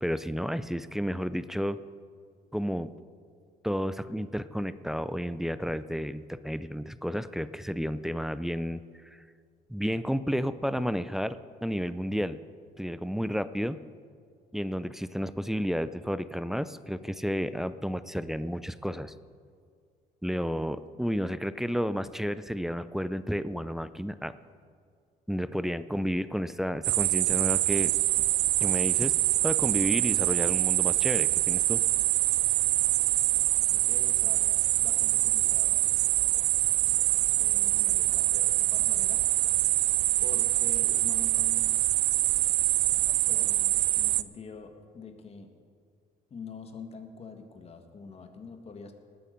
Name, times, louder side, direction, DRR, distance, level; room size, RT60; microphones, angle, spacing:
voice 1, 0.0-1.8 2.5-2.9 3.6-9.2 9.7-12.4 12.8-13.8 14.5-19.1 20.2-24.3 25.3-27.9 28.6-29.2 29.4-31.8, equal, ahead, 14 dB, 0.4 m, -31 dB
sound 1, 26.8-44.2, right 19 dB, 85° right, 0.4 m, -25 dB
voice 2, 33.7-35.8 37.4-39.2 40.2-41.8 43.3-45.5 46.3-48.9, left 5 dB, 35° left, 5 dB, 1.6 m, -45 dB
19.5 x 8.7 x 5.3 m, 2.2 s
cardioid pair, 110°, 17 cm